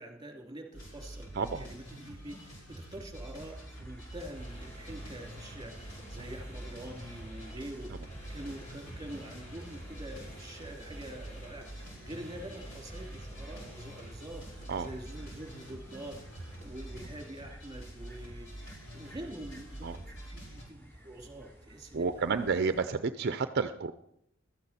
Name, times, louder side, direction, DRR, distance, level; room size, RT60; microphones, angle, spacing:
voice 1, 0.0-22.4, right 1 dB, 20° right, 3 dB, 2.9 m, -46 dB
sound 1, 0.7-20.6, right 1 dB, 65° left, 5.1 m, -47 dB
voice 2, 1.3-1.7 14.7-14.9 19.8-20.0 21.9-23.9, right 5 dB, 55° right, 11 dB, 0.5 m, -30 dB
sound 2, 3.5-22.9, equal, 10° left, 3.5 m, -53 dB
sound 3, 4.3-17.5, right 1 dB, 35° left, 5.4 m, -51 dB
16.0 x 13.0 x 4.3 m, 0.78 s
head